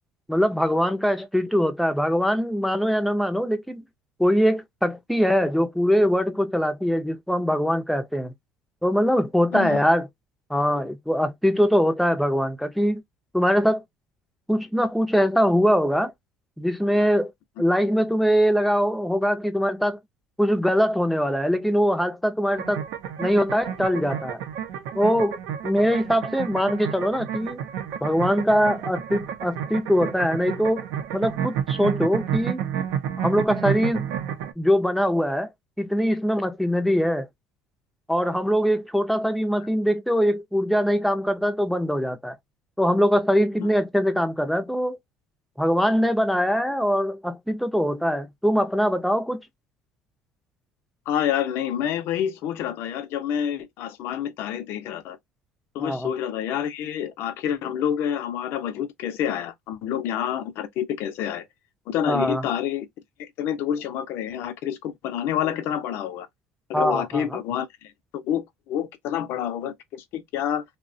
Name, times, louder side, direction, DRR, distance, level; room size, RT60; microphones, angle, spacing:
voice 1, 0.3-3.8 4.2-8.3 8.8-10.1 10.5-13.0 13.3-13.8 14.5-16.1 16.6-17.3 17.6-20.0 20.4-22.8 23.2-24.4 24.9-27.6 28.0-30.9 31.1-32.6 33.2-34.1 34.6-35.5 35.8-37.3 38.1-42.4 42.8-45.0 45.6-49.4 55.8-56.1 62.1-62.4 66.7-67.2, equal, ahead, 0.4 m, -22 dB
sound 1, 22.5-34.5, right 9 dB, 85° right, 0.5 m, -30 dB
voice 2, 51.1-55.2 55.7-61.5 61.9-62.9 63.2-66.3 66.7-70.6, left 9 dB, 65° left, 0.5 m, -28 dB
2.7 x 2.1 x 2.5 m
cardioid pair, 135°, 4 cm